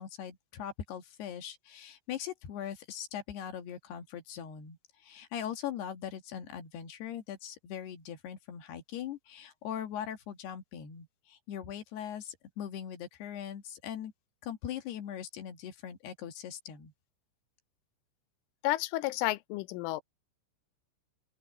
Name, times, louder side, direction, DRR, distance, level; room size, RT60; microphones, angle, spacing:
voice 1, 0.0-14.1 14.4-16.9, left 9 dB, 65° left, 3.6 m, -41 dB
voice 2, 18.6-20.0, left 17 dB, 90° left, 3.3 m, -31 dB
open air
omnidirectional pair, 5.5 m